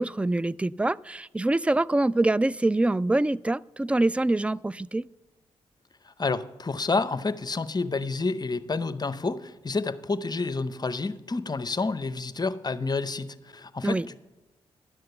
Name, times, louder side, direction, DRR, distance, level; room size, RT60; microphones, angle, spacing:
voice 1, 0.0-5.1 13.8-14.1, right 2 dB, 10° right, 0.3 m, -25 dB
voice 2, 6.0-14.2, left 3 dB, 30° left, 0.8 m, -29 dB
11.5 x 7.7 x 6.8 m
supercardioid pair, 40°, 13 cm